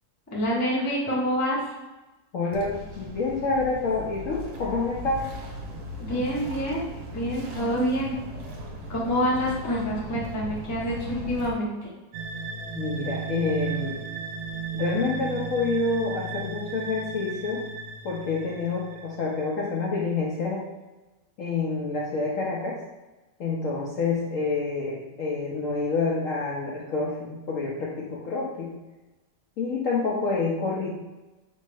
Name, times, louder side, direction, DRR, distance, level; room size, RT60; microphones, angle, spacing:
voice 1, 0.3-1.6 6.0-8.2 8.9-11.7, equal, 15° left, -5 dB, 0.5 m, -27 dB
voice 2, 2.3-5.3 12.7-14.0 14.7-17.6 18.0-20.7 21.4-22.8 23.4-28.7 29.6-30.9, left 3 dB, 65° left, -4 dB, 0.8 m, -28 dB
sound 1, 2.5-11.5, equal, 55° right, 1.1 m, -38 dB
sound 2, 12.1-19.7, right 5 dB, 75° right, 1.1 m, -35 dB
4.2 x 3.1 x 3.3 m, 1.1 s
omnidirectional pair, 1.9 m